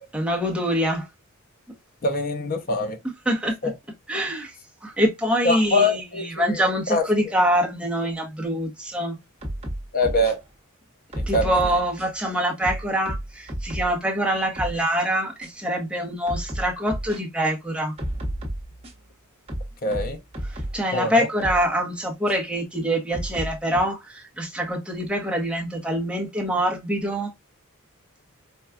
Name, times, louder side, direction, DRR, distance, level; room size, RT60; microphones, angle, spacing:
voice 1, 0.1-1.1 3.3-3.6 4.1-4.5 4.8-6.0 6.4-9.2 11.3-17.9 20.5-27.3, equal, 5° right, 0.8 m, -25 dB
voice 2, 2.0-3.0 3.6-3.7 5.4-6.6 6.9-7.0 9.9-10.4 11.3-11.6 19.8-20.2 20.9-21.3, left 2 dB, 40° left, 0.6 m, -23 dB
sound 1, 9.4-10.3 11.1-12.2 12.6-14.0 14.3-14.8 15.4-15.5 16.3-17.2 18.0-19.1 19.5-20.8 21.4-21.6 22.3-22.4 23.1-23.8, right 1 dB, 30° right, 1.1 m, -32 dB
4.3 x 2.3 x 2.3 m
head